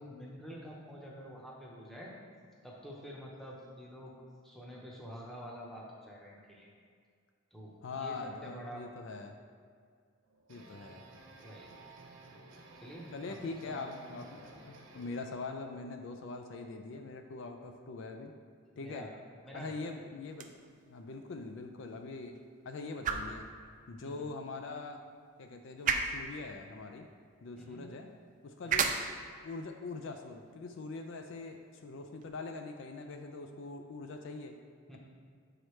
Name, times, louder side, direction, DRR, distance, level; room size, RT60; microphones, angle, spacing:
voice 1, 0.0-2.1 2.6-4.1 4.4-6.7 7.5-8.9 10.9-11.1 11.4-11.7 12.7-13.4 13.6-13.9 18.8-19.1 19.4-19.7 24.0-24.3 27.6-27.9 28.6-28.9 34.9-35.0, equal, ahead, -4 dB, 0.8 m, -48 dB
voice 2, 7.8-9.4 10.5-11.0 13.1-18.3 18.8-19.1 19.5-20.5 20.9-22.4 22.7-23.5 23.9-25.0 25.4-27.1 27.4-28.1 28.4-28.9 29.4-34.6, left 3 dB, 60° left, 5 dB, 0.4 m, -43 dB
sound 1, 10.2-15.3, right 2 dB, 60° right, 0.7 m, -54 dB
sound 2, 20.2-32.3, right 5 dB, 35° right, 0.3 m, -39 dB
7.4 x 4.8 x 3.1 m, 2.1 s
head